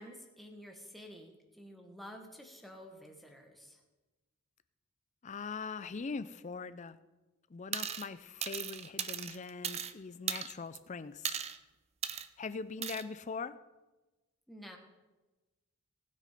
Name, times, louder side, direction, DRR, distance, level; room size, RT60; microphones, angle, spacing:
voice 1, 0.0-3.8 14.5-14.8, equal, ahead, 2 dB, 1.3 m, -50 dB
voice 2, 5.2-7.0 7.5-11.4 12.4-13.6, left 4 dB, 30° left, 13 dB, 0.4 m, -41 dB
sound 1, 7.7-8.1 8.4-9.9 10.3-10.8 11.2-11.6 12.0-12.3 12.8-13.0, right 8 dB, 30° right, 0.5 m, -37 dB
19.0 x 6.7 x 5.0 m, 1.2 s
head